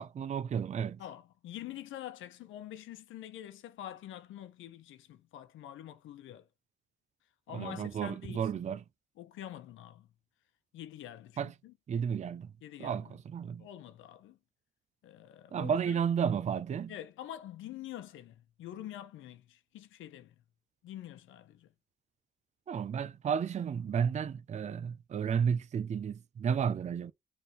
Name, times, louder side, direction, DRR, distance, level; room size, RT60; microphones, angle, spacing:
voice 1, 0.0-1.0 7.5-8.8 11.4-11.5 11.9-12.5 12.8-13.7 15.5-16.9 22.7-27.1, right 7 dB, 35° right, 0.5 m, -32 dB
voice 2, 1.0-6.5 7.5-8.5 9.2-10.1 10.7-11.7 12.6-13.1 13.6-14.4 15.0-16.0 16.9-20.3 20.8-21.7, left 12 dB, 85° left, 0.9 m, -46 dB
4.3 x 3.5 x 3.0 m
cardioid pair, 90°, 20 cm